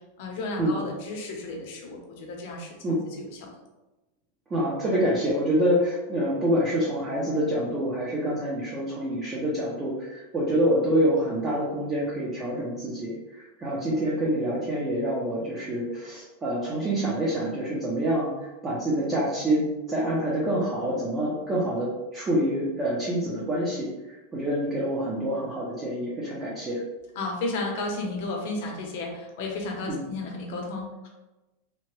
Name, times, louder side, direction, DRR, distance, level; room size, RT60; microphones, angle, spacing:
voice 1, 0.2-2.8 3.0-3.5 27.2-31.1, left 2 dB, 55° left, 0 dB, 0.7 m, -33 dB
voice 2, 4.5-18.3 18.6-23.9 24.3-26.8 29.9-30.0, equal, 15° right, -6 dB, 0.5 m, -26 dB
2.8 x 2.1 x 3.0 m, 1.1 s
supercardioid pair, 155°, 0 cm